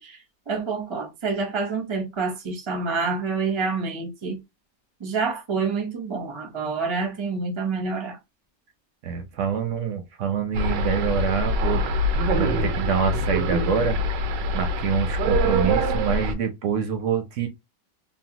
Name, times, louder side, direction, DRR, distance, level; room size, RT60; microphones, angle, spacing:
voice 1, 0.0-4.4 5.0-8.2, right 4 dB, 35° right, 0.4 m, -28 dB
voice 2, 9.0-11.8 12.3-14.0 14.5-17.5, right 7 dB, 65° right, 0.8 m, -26 dB
sound 1, 10.5-16.3, equal, 90° right, 1.3 m, -24 dB
3.1 x 2.1 x 2.8 m
omnidirectional pair, 1.9 m